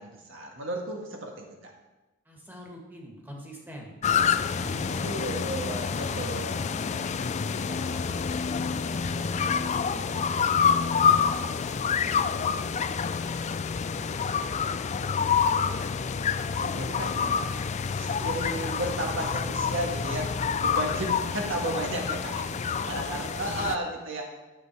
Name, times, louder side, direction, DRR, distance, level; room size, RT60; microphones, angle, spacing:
voice 1, 0.0-1.7 5.0-7.1 16.5-17.7 18.0-24.3, right 1 dB, 65° right, 0 dB, 1.7 m, -34 dB
voice 2, 2.3-5.1 5.9-6.5 7.5-11.9 12.3-13.3 13.8-15.5 22.5-23.8, equal, 10° right, -1 dB, 2.0 m, -45 dB
sound 1, 4.0-23.8, left 6 dB, 35° left, 0.3 m, -27 dB
11.0 x 7.7 x 4.7 m, 1.1 s
head